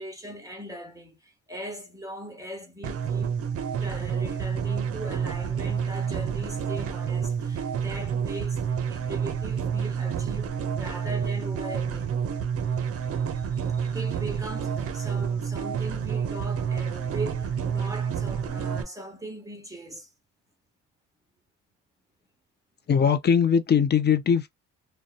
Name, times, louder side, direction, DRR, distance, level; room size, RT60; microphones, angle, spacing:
voice 1, 0.0-3.3 3.8-12.2 13.2-20.1, right 1 dB, 10° right, 0.9 m, -40 dB
sound 1, 2.8-18.8, right 7 dB, 50° right, 0.6 m, -29 dB
voice 2, 22.9-24.5, left 7 dB, 35° left, 0.5 m, -21 dB
2.7 x 2.2 x 2.4 m
cardioid pair, 90°, 30 cm